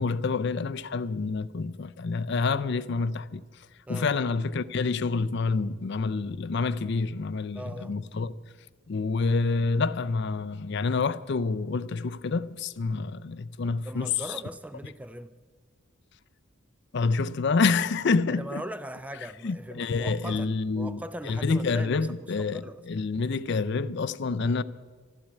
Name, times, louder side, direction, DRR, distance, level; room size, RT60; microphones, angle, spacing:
voice 1, 0.0-3.4 3.9-8.3 8.9-14.1 16.9-18.6 19.4-24.6, left 4 dB, 55° left, 0.5 m, -28 dB
voice 2, 3.9-4.2 7.5-8.0 13.8-15.3 18.3-22.8, right 1 dB, 5° right, 0.3 m, -40 dB
12.5 x 12.0 x 8.3 m
head